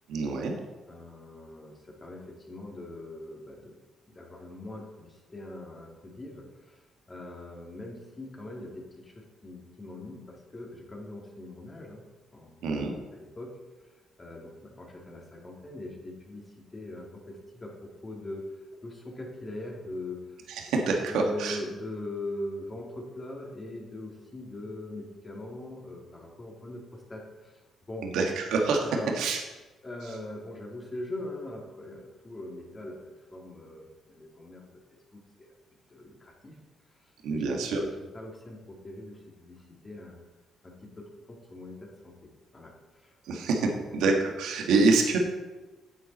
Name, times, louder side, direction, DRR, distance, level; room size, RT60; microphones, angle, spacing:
voice 1, 0.1-0.5 12.6-12.9 20.5-21.6 28.0-28.9 29.1-29.4 37.2-37.8 43.3-45.2, right 3 dB, 85° right, 1 dB, 1.6 m, -26 dB
voice 2, 0.9-3.8 4.1-12.0 12.3-12.6 13.1-13.5 13.8-13.9 14.2-18.5 18.8-20.4 21.0-28.1 28.8-29.1 29.8-33.0 33.3-34.8 35.1-35.5 35.9-36.6 37.0-40.2 40.6-43.1 43.6-44.0, left 1 dB, 25° left, -2 dB, 2.6 m, -42 dB
9.7 x 7.9 x 4.2 m, 1.2 s
cardioid pair, 90°, 0 cm